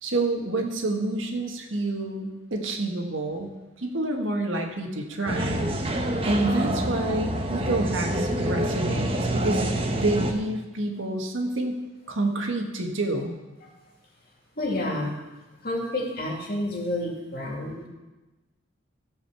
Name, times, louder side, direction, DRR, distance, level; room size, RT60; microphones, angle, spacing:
voice 1, 0.0-3.5 3.8-5.7 6.3-9.7 10.0-11.8 12.1-13.4, right 2 dB, 85° right, 2 dB, 1.7 m, -28 dB
sound 1, 5.3-10.3, right 1 dB, 30° right, 1.0 m, -27 dB
voice 2, 14.2-15.2 15.6-17.9, left 1 dB, 50° left, -2 dB, 2.6 m, -30 dB
15.0 x 5.2 x 6.8 m, 1.1 s
head